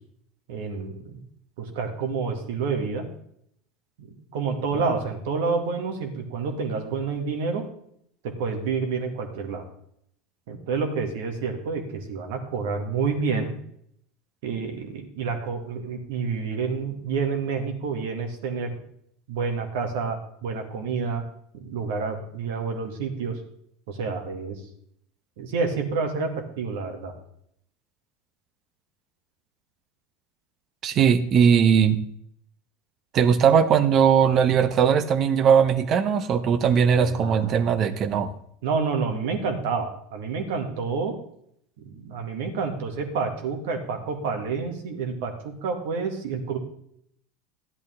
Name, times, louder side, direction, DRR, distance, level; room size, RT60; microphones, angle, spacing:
voice 1, 0.5-1.2 1.6-3.0 4.0-7.6 8.2-9.7 10.5-13.5 14.4-18.7 19.3-21.2 21.5-23.4 23.9-24.6 25.4-27.1 30.9-31.0 36.9-37.4 38.6-41.1 41.8-46.6, right 5 dB, 65° right, 5 dB, 2.0 m, -29 dB
voice 2, 30.8-32.0 33.1-38.3, right 7 dB, 40° right, 13 dB, 0.9 m, -19 dB
13.0 x 10.5 x 3.6 m, 0.69 s
figure-of-eight pair, 80°, 0 cm